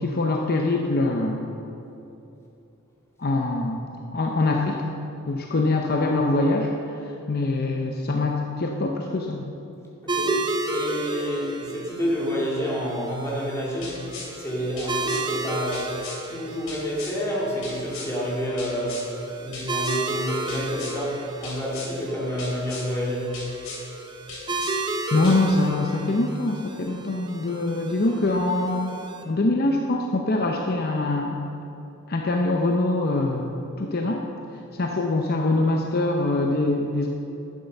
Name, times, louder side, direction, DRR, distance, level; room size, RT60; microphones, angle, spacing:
voice 1, 0.0-1.5 3.2-4.8 5.3-9.5 25.1-31.4 32.1-34.2 34.7-37.1, left 2 dB, 45° left, 2 dB, 0.7 m, -24 dB
voice 2, 10.0-10.4 10.7-14.1 14.4-15.9 16.3-23.4, equal, 15° left, -5 dB, 2.3 m, -29 dB
sound 1, 10.1-29.2, right 2 dB, 20° right, 0.9 m, -33 dB
sound 2, 13.8-14.3 14.8-15.2 15.7-16.2 16.7-17.1 17.6-18.1 18.6-19.1 19.5-20.0 20.5-21.0 21.4-21.9 22.4-22.9 23.3-23.8 24.3-24.8 25.2-25.4, left 3 dB, 75° left, 2.9 m, -38 dB
11.0 x 7.6 x 6.7 m, 2.9 s
head